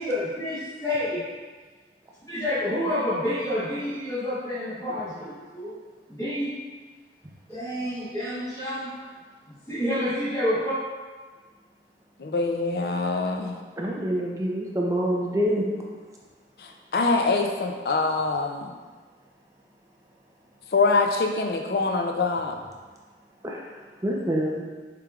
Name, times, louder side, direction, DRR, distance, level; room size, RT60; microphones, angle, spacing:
voice 1, 0.0-1.3 2.3-5.8 6.1-6.6 7.5-8.9 9.7-10.8, left 1 dB, 20° left, -12 dB, 1.0 m, -28 dB
voice 2, 12.2-13.6 16.6-18.7 20.7-22.6, left 3 dB, 60° left, 3 dB, 0.5 m, -24 dB
voice 3, 13.8-15.6 23.4-23.7 24.0-24.6, equal, 20° right, -2 dB, 0.5 m, -26 dB
6.8 x 3.3 x 2.4 m, 1.4 s
head